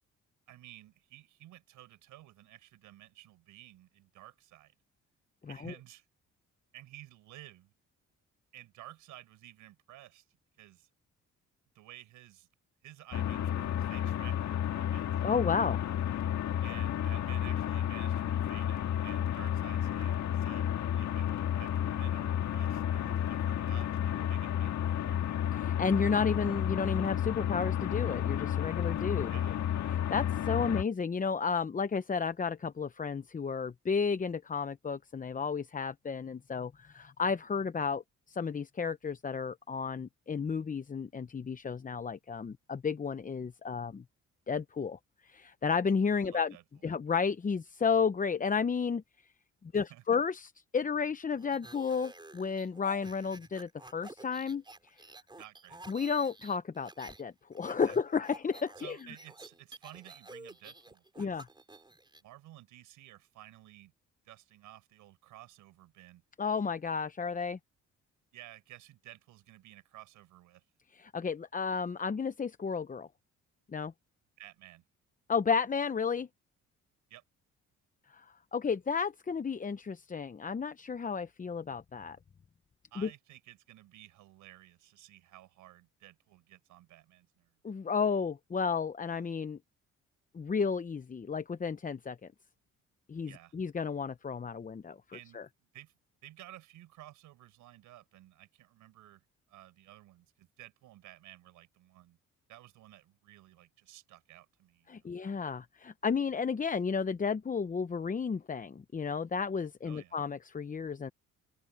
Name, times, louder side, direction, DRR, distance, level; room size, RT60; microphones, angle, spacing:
voice 1, 0.5-4.7 5.5-6.1 6.7-7.7 8.5-10.3 10.6-10.9 11.7-12.5 12.8-15.1 16.6-25.2 29.3-29.6 46.2-46.9 49.7-50.2 55.3-55.8 57.9-58.0 58.8-61.4 62.2-63.9 64.2-66.2 68.3-70.6 74.4-74.8 77.1-77.2 82.9-87.6 93.2-93.5 95.1-95.4 95.7-95.9 96.2-99.2 99.5-102.2 102.5-105.1 109.8-110.2, right 15 dB, 90° right, 5.7 m, -53 dB
sound 1, 13.1-30.8, left 10 dB, 70° left, 1.8 m, -32 dB
voice 2, 15.2-15.8 25.6-29.3 29.9-38.0 38.3-44.0 44.5-46.5 46.8-49.0 49.7-55.0 55.9-59.0 61.2-61.5 66.4-67.6 70.9-73.1 73.7-73.9 75.3-76.3 78.1-78.2 78.5-82.2 83.0-83.1 87.6-89.6 90.3-92.2 93.1-95.0 95.3-95.4 104.9-111.1, left 5 dB, 25° left, 0.8 m, -32 dB
sound 2, 51.4-57.2 57.5-62.2, right 2 dB, 15° right, 4.3 m, -51 dB
open air
cardioid pair, 90°, 30 cm